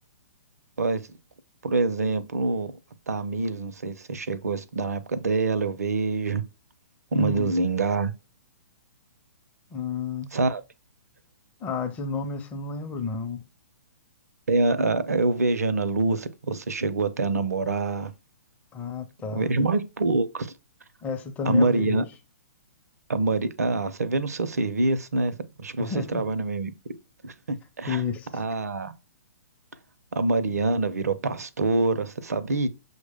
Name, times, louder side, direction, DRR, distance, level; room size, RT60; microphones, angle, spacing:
voice 1, 1.6-2.7 3.1-6.4 7.1-8.1 10.3-10.6 14.5-18.1 19.3-20.5 21.4-22.0 23.1-26.7 27.2-28.0 28.3-28.9 30.1-32.7, right 3 dB, 70° right, 0.6 m, -25 dB
voice 2, 7.1-7.5 9.7-10.3 11.6-13.4 18.7-19.5 21.0-22.1 25.8-26.3 27.9-28.3, left 5 dB, 15° left, 0.5 m, -31 dB
6.1 x 2.1 x 3.5 m
figure-of-eight pair, 120°, 9 cm